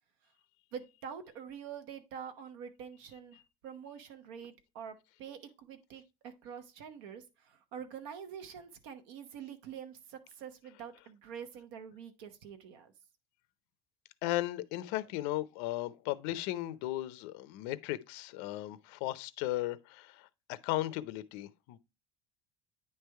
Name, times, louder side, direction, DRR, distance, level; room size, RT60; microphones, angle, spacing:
voice 1, 0.7-12.9, right 7 dB, 90° right, 0.9 m, -46 dB
voice 2, 14.2-21.8, left 16 dB, 75° left, 0.6 m, -36 dB
9.6 x 3.3 x 4.5 m
cardioid pair, 175°, 12 cm